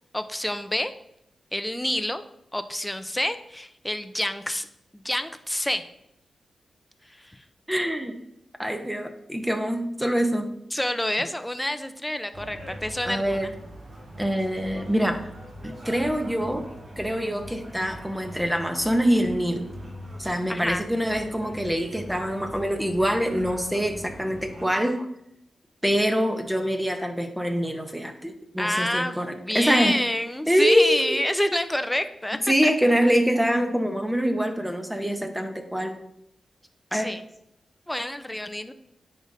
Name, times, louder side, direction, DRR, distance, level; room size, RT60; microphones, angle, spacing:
voice 1, 0.1-0.9 1.5-2.2 2.5-4.7 4.9-5.8 7.1-7.4 10.7-13.5 20.5-20.8 28.6-29.2 29.4-33.1 36.9-37.2 37.9-38.7, left 1 dB, 10° left, 10 dB, 0.6 m, -28 dB
voice 2, 7.7-8.2 8.6-10.5 13.0-13.5 14.2-15.2 15.6-16.6 17.0-19.7 20.2-25.1 25.8-30.0 30.5-31.2 32.5-36.0 36.9-37.1, equal, 5° right, 5 dB, 0.9 m, -25 dB
sound 1, 12.3-24.6, right 1 dB, 50° right, 1.6 m, -42 dB
9.9 x 3.9 x 2.7 m, 0.78 s
cardioid pair, 50°, 0 cm